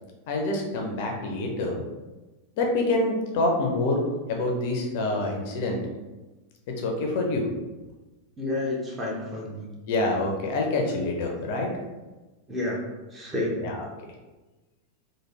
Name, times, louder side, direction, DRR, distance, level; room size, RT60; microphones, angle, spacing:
voice 1, 0.3-1.8 2.6-4.0 4.3-5.8 6.8-7.5 9.9-11.7 13.6-13.8, left 2 dB, 50° left, 1 dB, 0.5 m, -26 dB
voice 2, 8.4-9.7 12.5-12.8 13.1-13.7, left 2 dB, 15° right, -3 dB, 0.8 m, -30 dB
3.2 x 2.2 x 3.2 m, 1.2 s
figure-of-eight pair, 90°, 0 cm